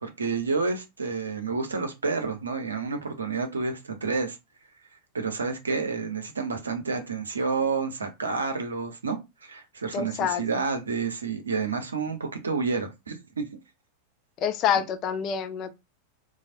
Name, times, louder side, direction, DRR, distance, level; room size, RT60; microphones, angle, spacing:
voice 1, 0.0-4.4 5.1-13.5, right 4 dB, 75° right, 0.6 m, -29 dB
voice 2, 9.9-10.6 14.4-15.8, left 8 dB, 35° left, 0.4 m, -27 dB
3.2 x 2.0 x 2.5 m
figure-of-eight pair, 90°, 0 cm